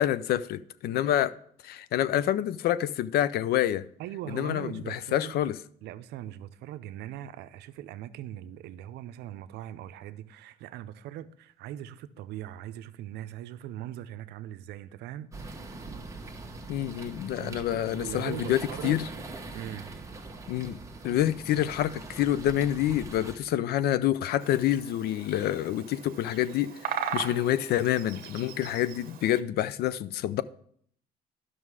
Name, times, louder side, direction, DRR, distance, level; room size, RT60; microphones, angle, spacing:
voice 1, 0.0-1.3 1.6-3.9 4.3-5.6 16.7-19.1 20.5-20.8 21.0-30.4, left 12 dB, 70° left, 0.5 m, -27 dB
voice 2, 4.0-5.4 5.8-15.3 17.4-19.0 19.5-20.0, right 12 dB, 80° right, 0.6 m, -40 dB
sound 1, 15.3-23.4, right 2 dB, 20° right, 1.2 m, -42 dB
Bird vocalization bird call bird song, 24.4-29.4, right 7 dB, 60° right, 1.0 m, -39 dB
11.0 x 6.1 x 4.8 m
cardioid pair, 110°, 17 cm